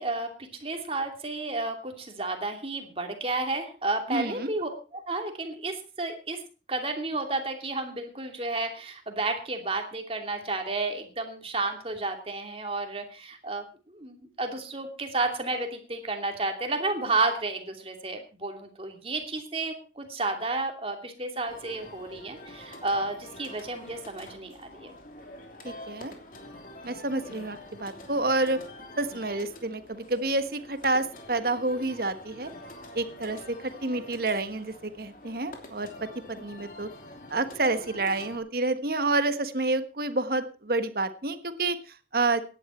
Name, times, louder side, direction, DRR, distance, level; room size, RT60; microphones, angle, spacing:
voice 1, 0.0-6.4 6.7-24.9, right 3 dB, 30° right, 4 dB, 2.7 m, -32 dB
voice 2, 4.1-4.5 25.6-26.1 26.8-28.6 29.0-32.5 32.9-36.9 37.3-42.4, right 2 dB, 55° right, 10 dB, 1.4 m, -29 dB
sound 1, 21.5-38.4, left 1 dB, 50° left, 3.0 m, -46 dB
17.0 x 11.0 x 4.4 m, 0.36 s
head